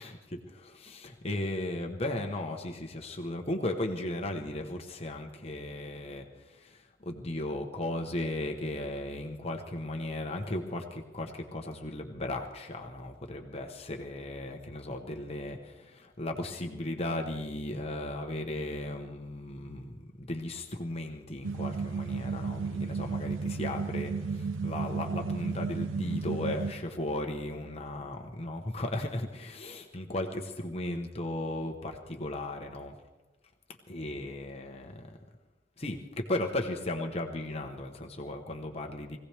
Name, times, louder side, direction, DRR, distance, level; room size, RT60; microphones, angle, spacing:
voice 1, 0.0-32.9 33.9-35.2 35.8-39.2, left 1 dB, 30° left, 3 dB, 1.0 m, -36 dB
sound 1, 21.4-26.7, right 4 dB, 85° right, 0.7 m, -33 dB
22.0 x 16.5 x 3.4 m, 1.2 s
head